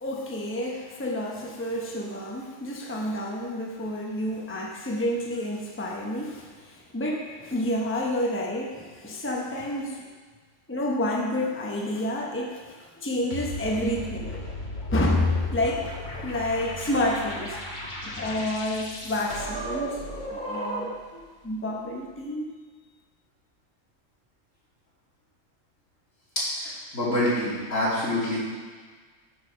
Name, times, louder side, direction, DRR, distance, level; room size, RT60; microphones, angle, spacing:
voice 1, 0.0-10.1 10.7-14.4 14.9-17.6 17.8-20.0 20.2-22.5, left 1 dB, 10° left, -1 dB, 0.9 m, -29 dB
sound 1, 13.3-21.1, equal, 40° left, 1.4 m, -35 dB
voice 2, 26.6-28.4, left 1 dB, 85° left, -9 dB, 3.7 m, -26 dB
7.1 x 6.4 x 6.4 m, 1.5 s
omnidirectional pair, 1.3 m